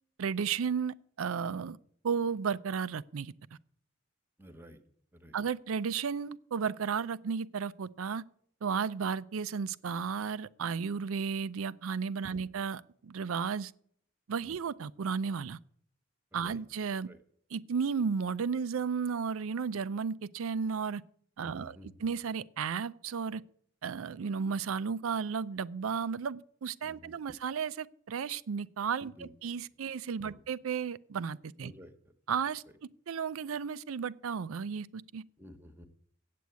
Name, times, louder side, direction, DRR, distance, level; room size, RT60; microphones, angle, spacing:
voice 1, 0.2-1.8 2.0-3.3 5.3-8.2 8.6-13.7 14.3-15.6 16.3-17.1 17.5-21.0 21.4-23.4 23.8-31.7 32.3-32.6 33.1-35.2, right 6 dB, 80° right, 0.4 m, -34 dB
voice 2, 4.4-4.8 5.1-5.4 12.3-12.5 14.4-14.6 16.3-16.6 17.1-17.2 21.4-21.9 26.8-27.1 29.0-29.3 30.2-30.4 31.6-31.9 35.4-35.9, equal, 10° right, 1.0 m, -52 dB
8.4 x 7.8 x 8.2 m
head